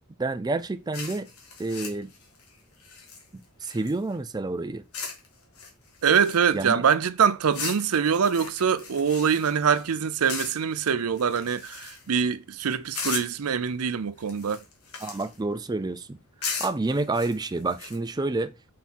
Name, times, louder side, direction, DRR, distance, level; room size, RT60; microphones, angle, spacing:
voice 1, 0.2-1.3 1.6-2.1 3.3-4.8 6.5-6.8 15.0-16.2 16.6-18.5, right 2 dB, 20° right, 0.4 m, -29 dB
sound 1, 0.9-4.2 4.9-5.3 5.5-6.7 7.5-9.9 10.3-10.8 11.2-12.2 12.9-13.5 14.2-15.4 16.4-18.0, left 5 dB, 85° left, 2.0 m, -37 dB
voice 2, 6.0-14.6, right 7 dB, 75° right, 0.5 m, -24 dB
5.9 x 4.3 x 4.3 m
head